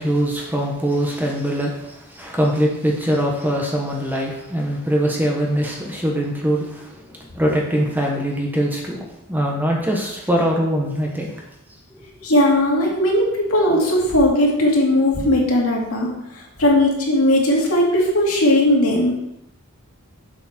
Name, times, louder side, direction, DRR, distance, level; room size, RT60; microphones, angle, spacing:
voice 1, 0.0-11.3 11.9-12.1, equal, 10° right, -1 dB, 1.3 m, -22 dB
voice 2, 12.2-16.1 16.6-19.1, left 1 dB, 70° left, -2 dB, 2.4 m, -17 dB
7.4 x 7.2 x 4.4 m, 0.84 s
head